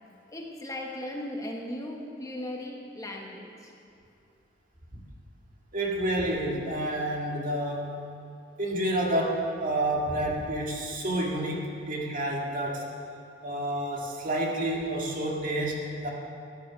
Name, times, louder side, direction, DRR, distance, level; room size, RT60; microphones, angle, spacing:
voice 1, 0.3-3.7, left 1 dB, 20° left, 0 dB, 1.2 m, -37 dB
voice 2, 5.7-8.0 8.6-12.8 13.4-16.1, right 1 dB, 45° right, -2 dB, 2.1 m, -29 dB
14.5 x 10.5 x 6.2 m, 2.5 s
head